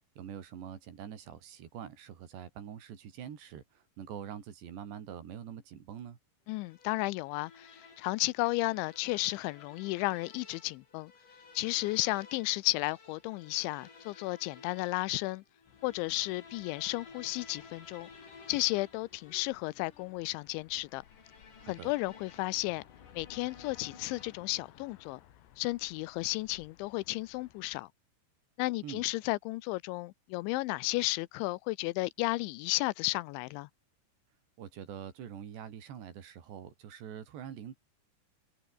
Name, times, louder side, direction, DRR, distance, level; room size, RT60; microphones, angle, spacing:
voice 1, 0.2-6.2 21.6-21.9 28.8-29.0 34.6-37.8, right 9 dB, 70° right, 5.0 m, -45 dB
voice 2, 6.5-11.1 11.5-15.4 15.8-18.1 18.5-21.0 21.7-22.8 23.1-25.2 25.6-27.9 28.6-33.7, left 21 dB, 90° left, 3.0 m, -33 dB
sound 1, 6.6-24.6, left 4 dB, 45° left, 7.1 m, -55 dB
sound 2, 15.7-27.8, left 11 dB, 70° left, 4.0 m, -60 dB
omnidirectional pair, 5.3 m